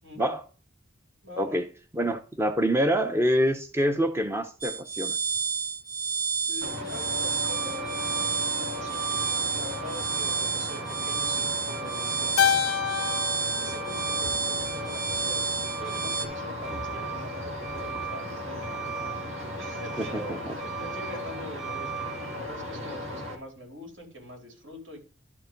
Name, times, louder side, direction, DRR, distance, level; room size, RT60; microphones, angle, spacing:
voice 1, 1.2-1.6 6.5-7.9 8.5-9.1 9.5-12.5 13.6-15.5 15.8-18.9 19.6-25.0, equal, 70° right, 3.6 m, -43 dB
voice 2, 1.9-5.2 16.7-16.8 20.0-20.6, equal, 10° right, 0.6 m, -26 dB
sound 1, 4.6-16.3, right 5 dB, 45° right, 2.0 m, -30 dB
Truck, 6.6-23.3, right 1 dB, 90° right, 2.4 m, -35 dB
Keyboard (musical), 12.4-14.9, left 9 dB, 75° left, 0.4 m, -28 dB
12.0 x 4.7 x 5.2 m
head